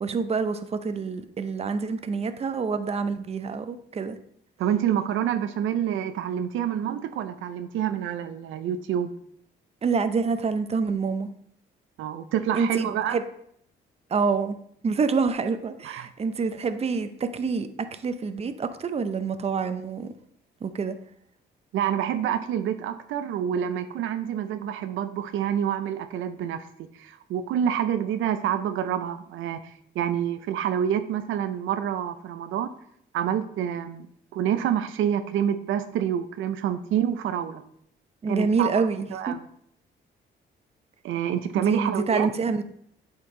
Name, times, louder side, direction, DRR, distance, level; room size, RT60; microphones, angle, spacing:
voice 1, 0.0-4.2 9.8-11.3 12.5-13.2 14.1-14.6 14.8-20.1 20.6-21.0 38.2-39.3 41.6-42.6, right 5 dB, 30° right, 10 dB, 0.6 m, -27 dB
voice 2, 4.6-9.1 12.0-13.2 15.8-16.1 21.7-32.7 33.1-37.6 38.3-39.4 41.0-42.3, right 9 dB, 80° right, 10 dB, 0.6 m, -27 dB
8.2 x 4.5 x 3.8 m, 0.68 s
cardioid pair, 90°, 20 cm